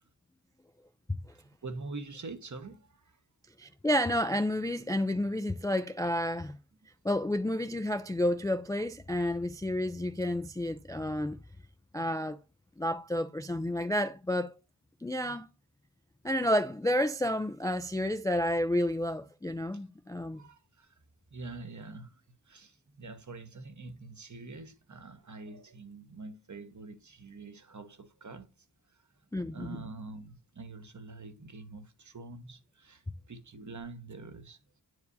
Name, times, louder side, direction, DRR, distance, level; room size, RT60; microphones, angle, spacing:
voice 1, 1.3-3.2 19.7-19.9 20.2-21.0 21.3-34.8, right 3 dB, 45° right, 1.0 m, -46 dB
voice 2, 3.6-6.6 7.0-11.4 11.9-12.4 12.8-14.5 15.0-15.5 16.2-20.4 29.3-29.8, left 1 dB, 10° left, 0.3 m, -30 dB
9.6 x 4.7 x 2.6 m
wide cardioid pair, 80°, 42 cm